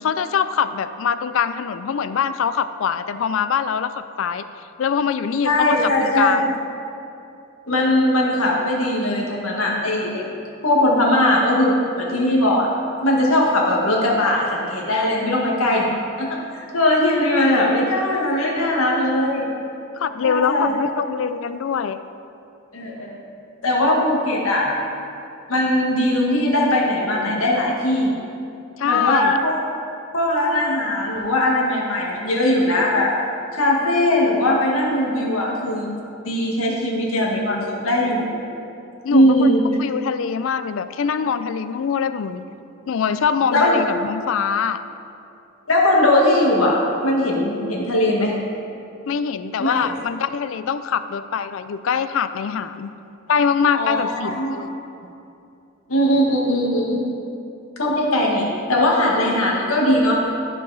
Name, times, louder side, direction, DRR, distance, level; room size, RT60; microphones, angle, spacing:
voice 1, 0.0-4.5 4.8-6.5 17.5-17.6 20.0-22.0 28.8-29.3 39.0-39.5 39.8-42.4 42.9-44.8 49.1-52.9 53.3-54.8, left 7 dB, 70° left, 12 dB, 0.4 m, -23 dB
voice 2, 5.4-6.4 7.7-10.3 10.6-12.7 13.0-15.9 16.2-19.4 20.2-20.8 22.7-23.2 23.6-24.7 25.5-28.1 28.9-29.6 30.1-33.1 33.5-35.9 36.3-38.3 39.1-39.6 43.5-43.8 45.7-48.3 49.6-49.9 53.7-54.6 55.9-57.1 57.8-60.2, left 1 dB, 90° left, -3 dB, 1.7 m, -19 dB
13.5 x 4.8 x 4.0 m, 2.6 s
head